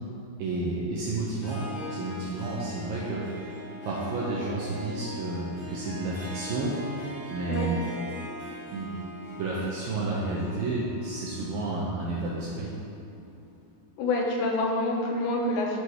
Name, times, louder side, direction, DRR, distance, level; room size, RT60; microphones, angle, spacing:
voice 1, 0.4-3.4 3.8-7.8 8.7-9.1 9.4-12.7, right 3 dB, 75° right, -5 dB, 2.1 m, -31 dB
Harp, 1.4-13.2, left 1 dB, 55° left, 2.0 m, -41 dB
voice 2, 14.0-15.8, left 2 dB, 80° left, -1 dB, 3.2 m, -27 dB
12.0 x 4.1 x 4.7 m, 2.7 s
omnidirectional pair, 5.0 m